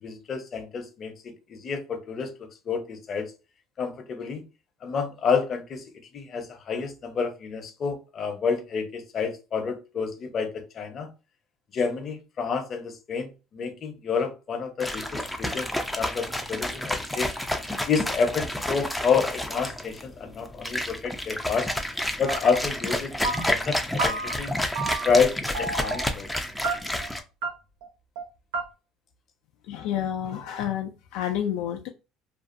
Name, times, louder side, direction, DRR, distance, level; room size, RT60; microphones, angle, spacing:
voice 1, 0.0-2.3 2.7-3.2 3.8-4.4 4.8-5.8 6.1-10.5 10.7-11.1 11.7-17.3 17.9-21.7 22.2-24.5 25.0-26.3, left 5 dB, 45° left, 0.6 m, -29 dB
sound 1, 14.8-27.2, left 1 dB, ahead, 0.4 m, -30 dB
sound 2, 22.3-22.6 22.9-23.7 24.0-24.5 24.7-25.3 25.5-26.1 26.6-27.1 27.4-27.5 27.8-27.9 28.2-28.3 28.5-28.6, right 3 dB, 90° right, 0.6 m, -31 dB
voice 2, 29.6-31.9, left 10 dB, 80° left, 0.3 m, -29 dB
2.5 x 2.3 x 2.5 m
supercardioid pair, 100°, 0 cm